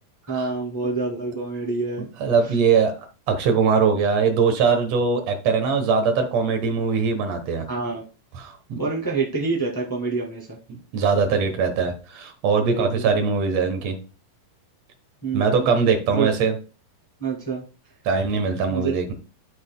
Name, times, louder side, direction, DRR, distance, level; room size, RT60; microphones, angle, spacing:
voice 1, 0.3-2.1 7.7-8.0 8.8-10.6 12.6-13.1 15.2-15.7 16.1-16.3 17.2-17.6 18.7-18.9, right 4 dB, 25° left, -5 dB, 0.4 m, -27 dB
voice 2, 2.2-7.7 8.4-8.8 10.9-13.9 15.3-16.5 18.0-19.1, right 5 dB, 70° right, 5 dB, 1.6 m, -21 dB
13.5 x 4.7 x 2.2 m, 0.35 s
omnidirectional pair, 4.6 m